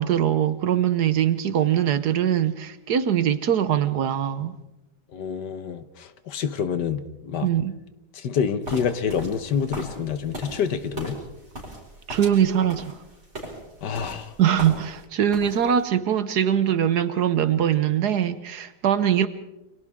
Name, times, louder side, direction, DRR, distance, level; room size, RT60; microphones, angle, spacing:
voice 1, 0.0-4.5 7.4-7.7 12.1-13.0 14.4-19.3, right 9 dB, 65° right, 1.5 m, -22 dB
voice 2, 5.1-7.5 8.1-11.2 13.8-14.3, left 7 dB, 70° left, 1.7 m, -27 dB
sound 1, 8.6-15.0 15.3-15.8, right 1 dB, 40° right, 5.8 m, -38 dB
29.5 x 25.5 x 3.7 m
omnidirectional pair, 1.9 m